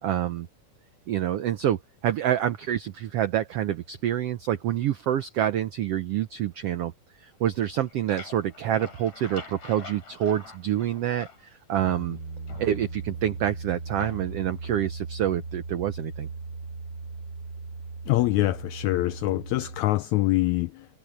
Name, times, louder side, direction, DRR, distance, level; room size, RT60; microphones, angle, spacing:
voice 1, 0.0-0.5 1.1-6.9 7.2-12.2 12.6-16.3, right 11 dB, 80° right, 1.3 m, -27 dB
sound 1, 7.6-11.5 11.9-13.2 14.0-14.5, left 4 dB, 55° left, 7.0 m, -45 dB
Piano, 11.8-19.8, right 4 dB, 35° right, 2.6 m, -38 dB
voice 2, 18.1-20.9, left 18 dB, 85° left, 1.6 m, -24 dB
omnidirectional pair, 3.8 m